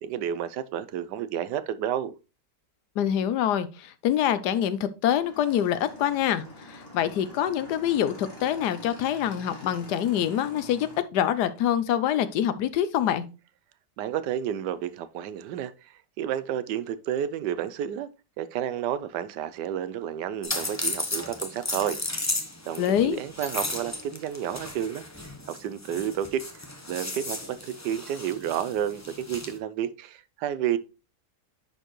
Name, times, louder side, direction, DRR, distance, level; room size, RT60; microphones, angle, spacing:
voice 1, 0.0-2.1 14.0-15.7 16.2-18.1 18.4-22.0 22.7-25.0 25.5-30.8, right 10 dB, 80° right, 1.2 m, -31 dB
voice 2, 3.0-6.4 6.7-13.2 22.8-23.2, left 10 dB, 75° left, 1.2 m, -25 dB
Motorcycle / Engine, 5.2-11.0, left 2 dB, 35° left, 2.2 m, -45 dB
sound 1, 20.4-29.6, left 2 dB, 15° left, 0.6 m, -35 dB
10.0 x 4.5 x 3.0 m
omnidirectional pair, 1.8 m